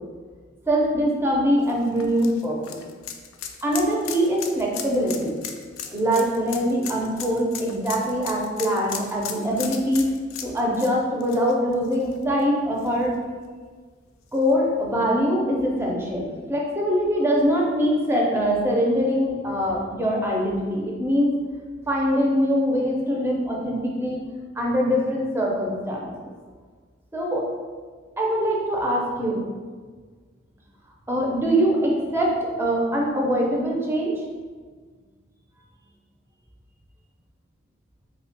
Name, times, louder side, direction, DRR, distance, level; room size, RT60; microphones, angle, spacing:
voice 1, 0.7-2.7 3.6-5.3 5.9-10.0 10.4-13.1 14.3-21.3 21.9-24.2 24.6-26.3 27.1-27.4 28.2-29.4 31.1-32.3 32.6-34.1, equal, 10° right, -2 dB, 0.5 m, -23 dB
sound 1, 1.6-12.4 12.8-12.9 14.3-14.4, left 8 dB, 70° left, 0.3 m, -36 dB
3.2 x 2.1 x 3.9 m, 1.5 s
head